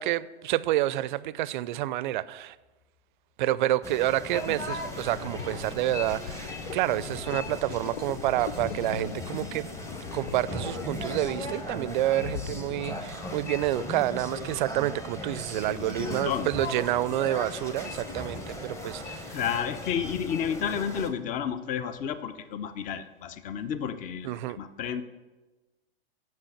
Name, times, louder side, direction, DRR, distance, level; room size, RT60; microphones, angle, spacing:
voice 1, 0.0-2.6 3.4-9.7 10.1-19.4 24.2-24.6, right 14 dB, 50° right, 19 dB, 0.4 m, -29 dB
sound 1, 3.8-21.1, left 1 dB, 10° left, 0.9 m, -38 dB
sound 2, 4.4-10.2 11.5-12.4 12.6-12.7 12.9-13.0 15.2-19.7, left 4 dB, 55° left, 1.5 m, -53 dB
sound 3, 4.5-13.9, left 7 dB, 80° left, 0.5 m, -41 dB
voice 2, 15.5-16.5 19.3-25.0, left 8 dB, 25° left, 13 dB, 0.6 m, -31 dB
7.5 x 6.0 x 7.2 m, 1.2 s
hypercardioid pair, 105°, 31 cm